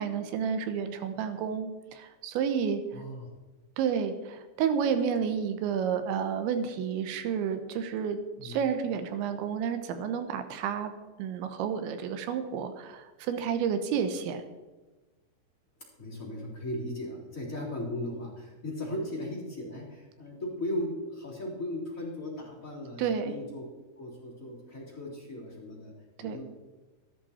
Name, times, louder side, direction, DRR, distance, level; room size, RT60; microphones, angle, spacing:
voice 1, 0.0-2.8 3.8-10.9 11.2-14.4 23.0-23.3 26.2-26.4, right 7 dB, 85° right, 8 dB, 3.3 m, -30 dB
voice 2, 2.9-3.3 8.4-8.6 16.0-23.7 24.0-25.9 26.2-26.4, left 1 dB, 20° left, -4 dB, 3.2 m, -37 dB
14.0 x 12.5 x 4.3 m, 1.2 s
omnidirectional pair, 5.1 m